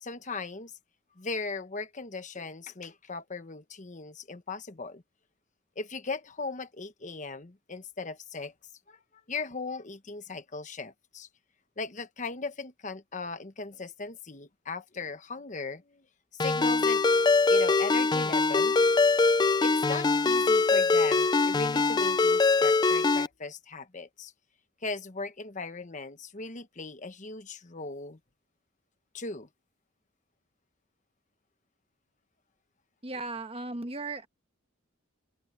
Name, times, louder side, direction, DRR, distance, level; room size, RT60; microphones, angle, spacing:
voice 1, 0.0-0.7 1.2-5.0 5.8-8.5 8.9-9.0 9.3-11.3 11.8-16.0 16.3-17.0 17.5-18.8 19.6-24.3 24.8-28.2 29.1-29.5, left 3 dB, 35° left, 1.1 m, -38 dB
Ringtone, 16.4-23.3, left 3 dB, 20° left, 0.3 m, -23 dB
voice 2, 33.0-34.3, right 2 dB, 30° right, 1.1 m, -36 dB
open air
head